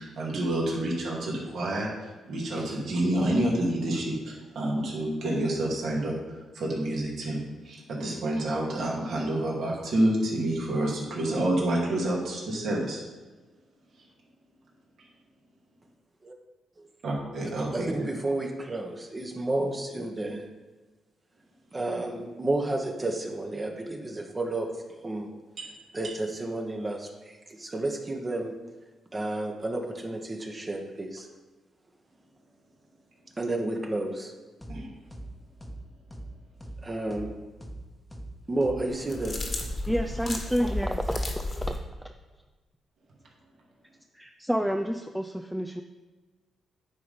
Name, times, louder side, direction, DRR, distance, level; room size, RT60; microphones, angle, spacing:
voice 1, 0.0-13.0 17.0-17.9 25.6-25.7 34.7-34.9, right 1 dB, 65° right, -3 dB, 2.3 m, -28 dB
voice 2, 17.7-20.4 21.7-25.3 25.9-28.5 29.1-31.3 33.4-34.3 36.8-37.3 38.5-39.4, right 2 dB, 30° right, 2 dB, 1.2 m, -31 dB
sound 1, 34.6-34.8 35.1-35.3 35.6-35.8 36.1-36.3 36.6-36.8 37.1-37.3 37.6-37.8 38.1-38.3 38.6-38.8 39.1-39.3 39.6-39.8 40.1-40.3 40.6-40.8 41.1-41.3 41.6-41.8, right 1 dB, 15° left, 1.1 m, -41 dB
sound 2, 38.9-41.8, left 2 dB, 45° left, 1.5 m, -33 dB
voice 3, 39.9-41.7 44.1-45.8, equal, 5° right, 4 dB, 0.5 m, -29 dB
9.3 x 3.9 x 5.2 m, 1.3 s
supercardioid pair, 60°, 0 cm